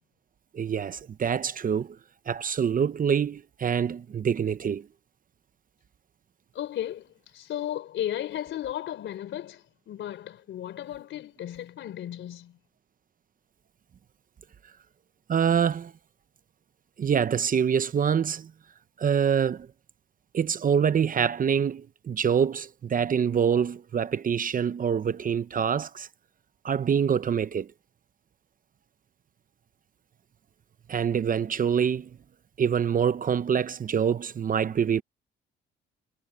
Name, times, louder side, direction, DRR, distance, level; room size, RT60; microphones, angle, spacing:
voice 1, 0.5-2.0 2.3-4.8 15.3-15.9 17.0-18.5 19.0-19.7 20.3-26.1 26.6-27.7 30.9-32.1 32.6-35.0, right 7 dB, 45° right, 0.9 m, -25 dB
voice 2, 6.5-7.1 7.3-12.6, left 11 dB, 75° left, 3.8 m, -35 dB
cardioid pair, 90°, 20 cm